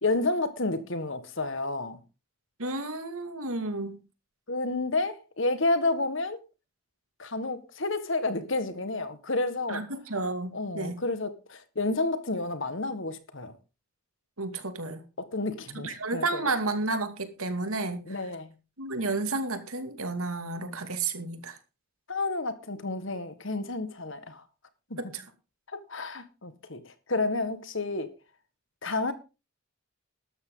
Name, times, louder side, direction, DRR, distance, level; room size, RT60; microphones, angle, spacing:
voice 1, 0.0-2.0 4.5-6.4 7.2-9.8 10.5-13.6 15.2-16.5 18.1-18.5 22.1-24.4 24.9-25.1 25.7-28.1 28.8-29.1, left 2 dB, 60° left, 1.6 m, -30 dB
voice 2, 2.6-4.0 9.7-11.0 14.4-15.0 15.8-18.0 18.8-21.5 25.0-25.2, right 3 dB, 75° right, 2.4 m, -31 dB
13.0 x 12.5 x 3.9 m
head